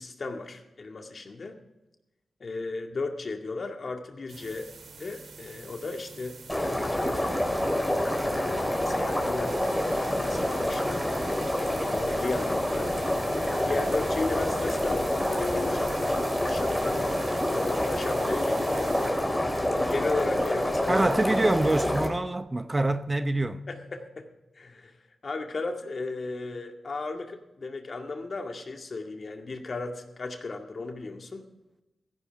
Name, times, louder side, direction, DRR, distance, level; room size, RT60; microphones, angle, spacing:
voice 1, 0.0-1.6 2.4-6.4 7.0-9.6 9.9-11.1 11.6-13.0 13.5-16.0 16.4-17.2 17.5-19.0 19.7-21.1 23.7-24.3 24.6-24.9 25.2-31.5, left 3 dB, 55° left, 2.1 m, -35 dB
sound 1, 4.3-19.1, right 4 dB, 75° right, 2.5 m, -45 dB
sound 2, 6.5-22.1, left 1 dB, 10° left, 4.0 m, -27 dB
voice 2, 20.9-23.7, right 2 dB, 25° right, 0.8 m, -25 dB
16.0 x 15.0 x 3.6 m
cardioid pair, 50°, 0 cm